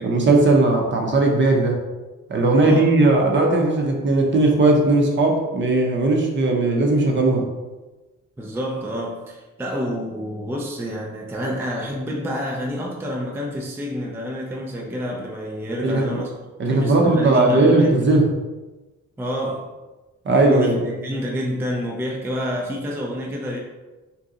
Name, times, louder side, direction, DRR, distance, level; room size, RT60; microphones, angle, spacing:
voice 1, 0.0-1.8 2.3-7.5 15.8-16.2 16.6-18.3 20.2-20.8, right 2 dB, 40° right, 1 dB, 0.7 m, -18 dB
voice 2, 2.6-2.9 8.4-16.3 16.6-18.0 19.2-19.7 20.3-23.6, equal, 10° right, -1 dB, 0.4 m, -28 dB
2.7 x 2.2 x 3.7 m, 1.2 s
cardioid pair, 90°, 30 cm